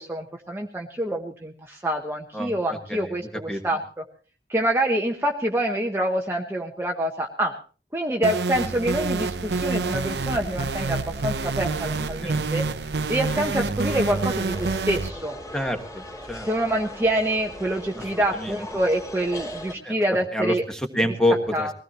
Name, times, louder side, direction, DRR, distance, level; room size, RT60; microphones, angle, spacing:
voice 1, 0.0-4.0 4.5-7.6 7.9-12.6 13.1-15.3 16.5-20.6 21.5-21.7, right 1 dB, 15° right, 1 dB, 0.9 m, -26 dB
sound 1, 8.2-15.1, right 3 dB, 80° right, 0.8 m, -27 dB
voice 2, 11.9-12.5 15.5-16.5 17.9-18.6 19.8-19.9 20.3-21.7, left 1 dB, 5° left, 5 dB, 1.5 m, -27 dB
sound 2, 13.8-19.8, left 1 dB, 20° left, 2.9 m, -38 dB
21.0 x 16.5 x 3.0 m, 0.38 s
head